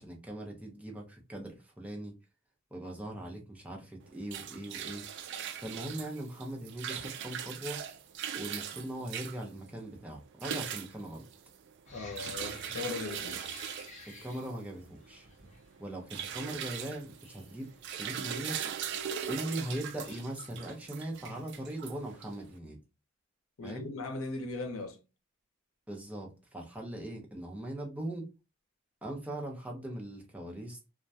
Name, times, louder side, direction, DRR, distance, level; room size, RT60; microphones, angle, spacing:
voice 1, 0.0-2.1 2.7-7.8 8.4-11.3 14.1-15.3 15.8-18.6 19.3-22.8 23.6-23.9 25.9-28.3 29.0-30.9, right 1 dB, 5° right, 0.6 m, -40 dB
sound 1, 4.0-22.5, right 8 dB, 60° right, 0.3 m, -40 dB
sound 2, 11.8-20.2, left 2 dB, 35° left, 0.7 m, -54 dB
voice 2, 11.9-13.6 21.3-21.4 23.6-25.0, left 3 dB, 85° left, 0.6 m, -39 dB
2.2 x 2.1 x 2.6 m
head